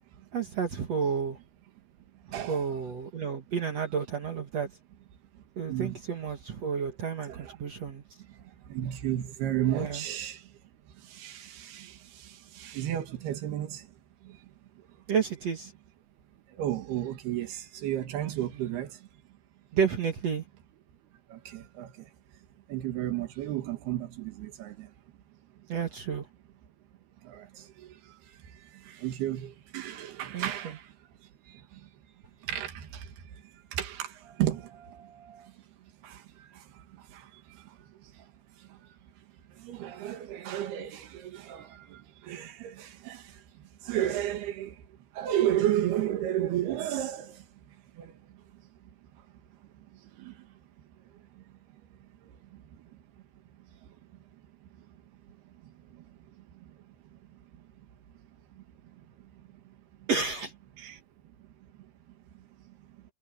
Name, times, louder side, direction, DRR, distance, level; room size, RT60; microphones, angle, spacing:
voice 1, 0.3-1.4 2.3-4.7 5.6-8.0 9.8-10.0 15.1-15.7 19.7-20.4 25.7-26.3 30.3-30.5 60.1-60.5, right 6 dB, 50° right, 2.4 m, -31 dB
voice 2, 2.3-2.7 3.2-3.3 5.3-6.0 7.3-7.9 8.2-10.6 10.9-13.9 14.2-14.5 14.8-14.9 16.5-19.1 21.3-22.1 22.7-24.9 25.6-25.7 27.2-31.9 32.4-35.6 36.0-48.6 49.8-50.5 51.1-51.4 51.7-53.0 53.8-54.0 54.6-55.0 55.6-57.9 58.5-60.1 60.8-61.0 61.4-61.5 61.8-61.9 62.7-63.0, right 12 dB, 90° right, 3.8 m, -35 dB
omnidirectional pair, 4.4 m